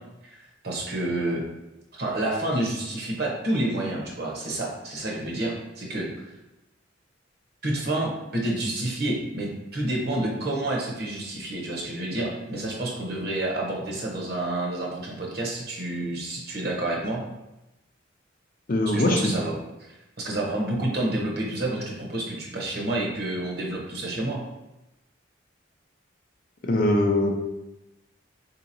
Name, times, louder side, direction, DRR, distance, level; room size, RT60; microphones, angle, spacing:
voice 1, 0.2-1.4 1.9-6.1 7.6-17.2 18.9-19.5 20.2-24.4, right 1 dB, 55° right, -2 dB, 0.8 m, -29 dB
voice 2, 18.7-19.3 26.6-27.3, left 1 dB, 45° left, 2 dB, 0.5 m, -21 dB
3.8 x 2.8 x 2.6 m, 0.95 s
head